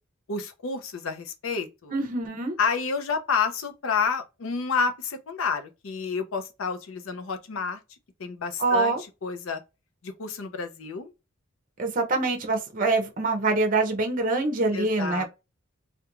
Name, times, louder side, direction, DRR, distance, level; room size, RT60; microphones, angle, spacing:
voice 1, 0.3-1.9 2.6-7.8 8.2-9.0 9.2-9.6 10.0-11.1 14.7-15.3, left 5 dB, 75° left, 0.5 m, -29 dB
voice 2, 1.9-2.6 8.6-9.0 11.8-15.3, right 3 dB, 40° right, 0.6 m, -25 dB
2.4 x 2.2 x 2.9 m
head